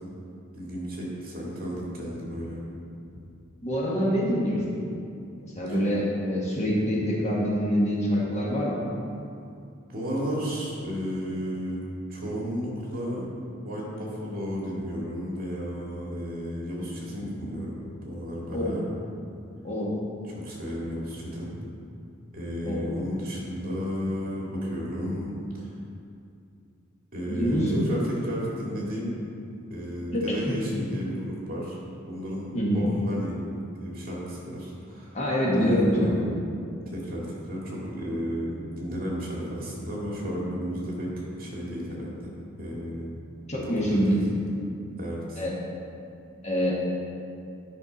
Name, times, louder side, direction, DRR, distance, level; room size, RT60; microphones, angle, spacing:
voice 1, 0.5-2.6 5.7-5.8 9.9-11.8 12.1-13.3 13.6-18.8 20.4-21.5 22.3-25.7 27.1-29.1 29.7-31.8 32.0-33.3 33.7-35.1 35.5-36.2 36.9-42.3 42.6-43.2 43.6-44.2 45.0-45.4, equal, 45° right, -4 dB, 2.1 m, -33 dB
voice 2, 3.6-4.8 5.4-8.8 18.5-18.7 19.6-19.9 22.6-22.8 27.3-27.9 29.4-29.5 30.1-30.6 32.5-32.8 35.1-36.3 43.5-44.2 45.4-45.5 46.4-46.7, equal, 35° left, -4 dB, 1.5 m, -25 dB
10.0 x 5.9 x 4.1 m, 2.5 s
head